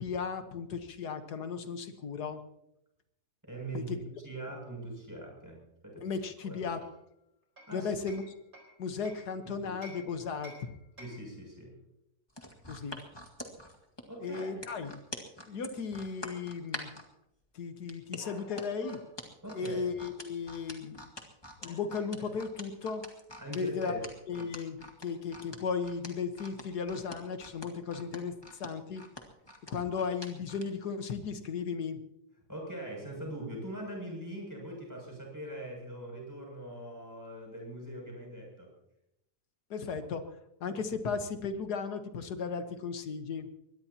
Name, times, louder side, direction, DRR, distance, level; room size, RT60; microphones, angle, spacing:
voice 1, 0.0-2.4 3.7-4.0 6.0-6.8 7.7-8.2 8.8-10.5 12.7-13.0 14.2-15.0 15.5-16.9 17.5-19.0 19.5-21.0 21.6-23.0 23.5-24.0 24.3-28.3 28.6-29.0 29.7-32.0 39.7-40.2 40.6-43.5, left 5 dB, 80° left, 8 dB, 1.9 m, -35 dB
voice 2, 3.4-6.0 6.4-6.7 7.7-7.9 9.6-9.7 11.0-11.7 14.1-14.7 19.4-19.9 23.4-24.0 32.5-38.7 40.7-40.8, right 1 dB, 10° right, -1 dB, 7.3 m, -42 dB
Hammer, 6.8-9.3 9.8-11.4, equal, 65° right, 5.1 m, -53 dB
sound 1, 12.3-17.1 17.9-30.7 31.1-31.3, left 1 dB, 15° left, 1.9 m, -45 dB
sound 2, 18.2-19.4 20.9-21.1 21.6-22.7 23.1-23.2 25.6-25.7 27.3-27.6, left 3 dB, 60° left, 2.4 m, -52 dB
23.0 x 20.5 x 2.9 m, 0.84 s
omnidirectional pair, 1.7 m